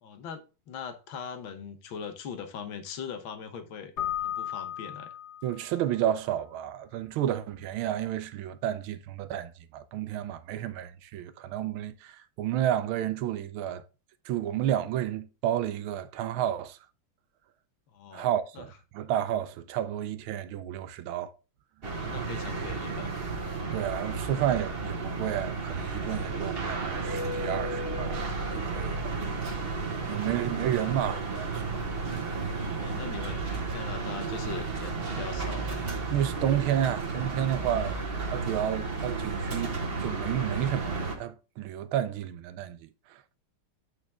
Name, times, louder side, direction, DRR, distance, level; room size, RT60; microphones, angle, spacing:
voice 1, 0.0-3.9 4.2-5.2 17.9-18.3 18.6-18.7 21.9-23.2 32.7-35.9 37.6-38.1, left 6 dB, 75° left, 1.8 m, -41 dB
Keyboard (musical), 4.0-5.8, left 11 dB, 45° left, 1.0 m, -35 dB
voice 2, 5.4-13.8 14.2-16.8 18.1-21.3 23.7-28.2 28.5-29.2 30.1-31.8 36.1-37.9 38.3-43.4, right 11 dB, 85° right, 1.5 m, -31 dB
sound 1, 21.8-41.2, right 3 dB, 30° right, 1.4 m, -33 dB
8.5 x 5.0 x 3.4 m
omnidirectional pair, 2.3 m